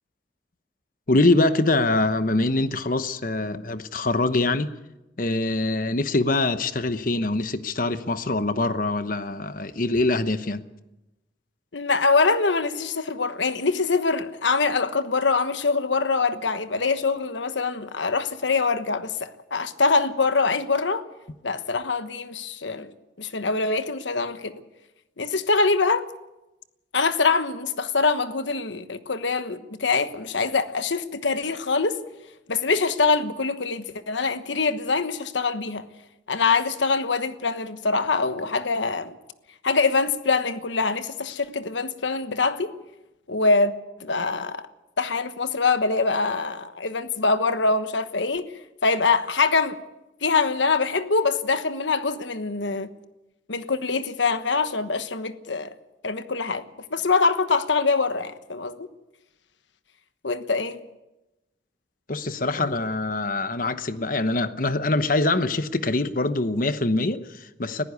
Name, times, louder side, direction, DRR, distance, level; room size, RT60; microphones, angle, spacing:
voice 1, 1.1-4.7 5.2-10.6 62.1-67.8, left 2 dB, 45° left, 1.0 m, -24 dB
voice 2, 11.7-21.0 21.4-22.9 23.2-24.6 25.2-26.1 26.9-32.0 32.5-35.9 36.3-39.2 39.6-42.7 43.3-43.7 44.0-44.7 45.0-48.4 48.8-49.8 50.2-52.9 53.5-55.7 56.0-56.7 56.9-58.9 60.2-60.8, left 4 dB, 80° left, 1.2 m, -24 dB
21.0 x 15.0 x 8.3 m
head